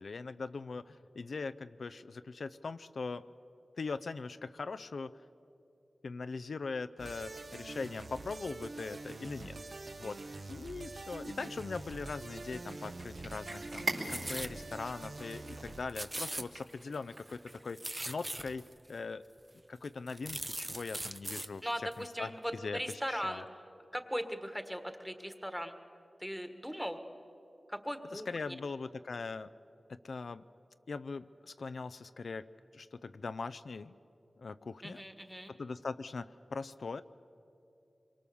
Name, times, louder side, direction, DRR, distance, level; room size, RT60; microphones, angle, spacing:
voice 1, 0.0-3.2 3.8-5.2 6.0-9.6 10.0-10.2 10.5-17.8 18.1-19.2 19.7-23.5 28.1-29.5 29.9-30.5 30.9-32.5 32.7-33.9 34.4-35.0 35.5-37.0, left 4 dB, 85° left, 12 dB, 0.5 m, -41 dB
sound 1, 7.0-15.8, right 2 dB, 55° right, 1.0 m, -45 dB
Cat, 12.5-17.8, right 2 dB, 80° right, 4.5 m, -43 dB
sound 2, 13.6-14.6 15.0-15.1 15.4-15.6 15.9-17.0 17.3-18.7 19.4-19.5 19.8-21.5 21.9-22.0, right 1 dB, 20° right, 0.7 m, -41 dB
voice 2, 21.6-23.4 23.9-25.8 26.2-27.0 27.7-28.5 34.8-35.5, equal, 5° right, 7 dB, 1.5 m, -39 dB
26.0 x 23.5 x 7.0 m, 2.8 s
wide cardioid pair, 95°, 0 cm